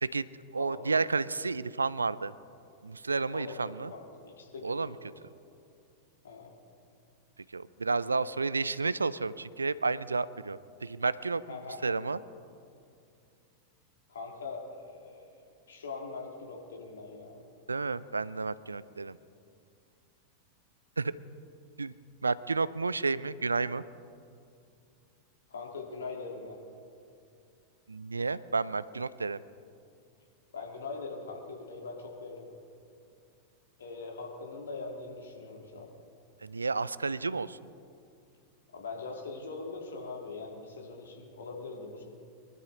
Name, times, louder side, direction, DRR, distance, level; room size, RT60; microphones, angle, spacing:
voice 1, 0.5-2.3 2.8-3.9 4.6-4.9 7.5-11.6 11.8-12.2 17.7-19.2 21.0-21.1 21.8-21.9 22.2-23.8 27.9-29.4 36.4-37.6, right 4 dB, 80° right, 18 dB, 0.4 m, -31 dB
voice 2, 3.9-4.8 6.2-6.5 11.5-11.8 14.1-17.4 25.5-26.6 30.5-32.5 33.8-35.9 38.7-42.0, left 4 dB, 65° left, 0 dB, 2.4 m, -42 dB
23.0 x 12.0 x 3.9 m, 2.4 s
figure-of-eight pair, 90°, 0 cm